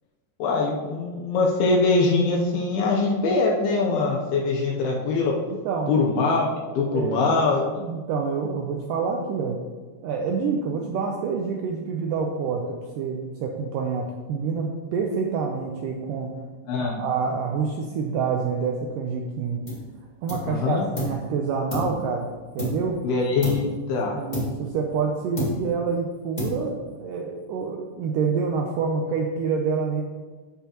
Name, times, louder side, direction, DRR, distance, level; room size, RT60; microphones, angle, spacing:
voice 1, 0.4-5.3 5.9-6.5 6.8-7.6 16.7-17.0 20.5-20.8 23.0-24.2, left 3 dB, 80° left, 0 dB, 2.7 m, -23 dB
voice 2, 5.7-6.0 6.9-9.6 10.0-16.4 16.8-19.6 20.2-22.3 22.6-23.0 24.1-30.0, right 5 dB, 85° right, 1 dB, 1.9 m, -27 dB
sound 1, 19.7-19.9 20.3-21.3 21.7-23.0 23.4-23.8 24.3-25.1 25.4-25.9 26.4-26.9, left 1 dB, 25° left, 0.9 m, -31 dB
13.5 x 5.6 x 2.9 m, 1.4 s
omnidirectional pair, 4.5 m